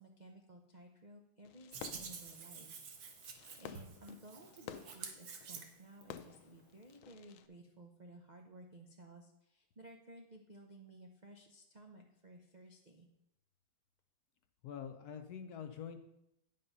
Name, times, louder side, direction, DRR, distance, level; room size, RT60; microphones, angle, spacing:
voice 1, 0.0-2.8 3.6-13.1, right 1 dB, 80° right, 2 dB, 0.4 m, -56 dB
Fireworks, 1.4-7.5, left 10 dB, 85° left, 1.3 m, -53 dB
Hands, 1.7-6.2, right 5 dB, 60° right, 1.4 m, -49 dB
voice 2, 14.6-16.0, left 8 dB, 65° left, 7 dB, 1.0 m, -45 dB
9.5 x 5.4 x 5.4 m, 0.83 s
omnidirectional pair, 2.1 m